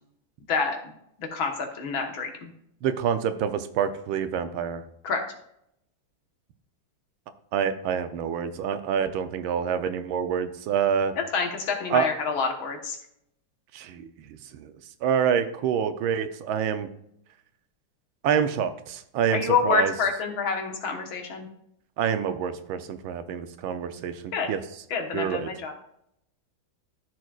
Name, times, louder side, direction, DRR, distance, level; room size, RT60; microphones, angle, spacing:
voice 1, 1.2-2.5 5.0-5.2 11.3-13.0 19.3-21.5 24.3-24.5 24.9-25.7, left 5 dB, 75° left, 3 dB, 2.1 m, -27 dB
voice 2, 2.8-4.8 7.5-11.1 11.9-12.1 13.7-14.1 14.5-14.7 15.0-16.9 18.2-19.9 22.0-24.6 25.1-25.5, right 7 dB, 80° right, 9 dB, 1.5 m, -27 dB
13.5 x 6.2 x 2.4 m, 0.73 s
omnidirectional pair, 2.2 m